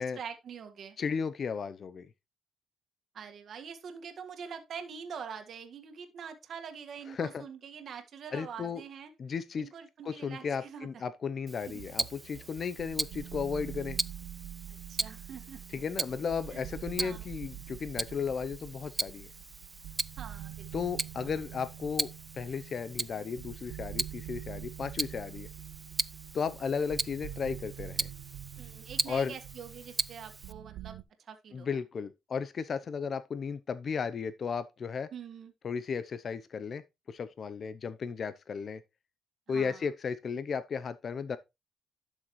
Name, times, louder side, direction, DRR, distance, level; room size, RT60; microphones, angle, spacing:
voice 1, 0.0-1.0 3.1-9.1 9.6-10.9 11.7-11.8 14.7-15.6 16.5-16.6 17.0-17.2 20.2-20.7 28.6-31.0 31.3-31.7 35.1-35.5 39.5-39.8, right 7 dB, 60° right, 1.7 m, -44 dB
voice 2, 1.0-2.1 7.1-7.4 8.3-8.8 9.2-9.7 10.0-14.0 15.7-19.3 20.7-25.5 26.3-28.1 29.1-29.3 31.5-35.1 35.6-38.8 39.5-41.4, left 6 dB, 50° left, 0.7 m, -35 dB
Tick-tock, 11.5-30.5, right 3 dB, 20° right, 0.4 m, -39 dB
sound 1, 11.6-31.0, right 12 dB, 80° right, 0.5 m, -45 dB
11.5 x 6.3 x 3.1 m
cardioid pair, 90°, 0 cm